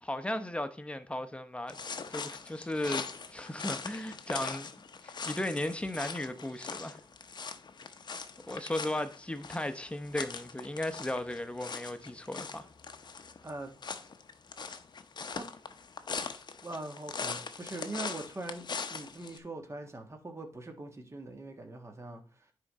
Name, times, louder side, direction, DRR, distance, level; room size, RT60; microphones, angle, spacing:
voice 1, 0.0-1.8 2.1-4.7 5.0-7.0 8.5-12.7, left 1 dB, 10° left, 0.9 m, -36 dB
sound 1, 1.7-19.4, left 5 dB, 50° left, 0.8 m, -41 dB
voice 2, 16.6-18.6 18.9-22.5, right 2 dB, 30° right, 1.6 m, -42 dB
9.7 x 3.9 x 4.2 m
cardioid pair, 55°, 9 cm